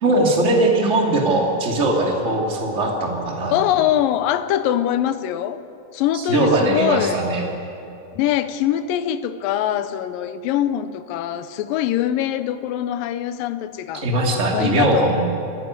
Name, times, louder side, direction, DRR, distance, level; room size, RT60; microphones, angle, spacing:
voice 1, 0.0-3.5 6.1-7.4 13.9-15.2, right 2 dB, 20° right, 0 dB, 2.4 m, -20 dB
voice 2, 3.5-5.6 5.9-7.2 8.2-14.1 14.4-15.2, left 11 dB, 80° left, 12 dB, 2.3 m, -23 dB
27.5 x 10.5 x 9.6 m, 2.7 s
omnidirectional pair, 4.2 m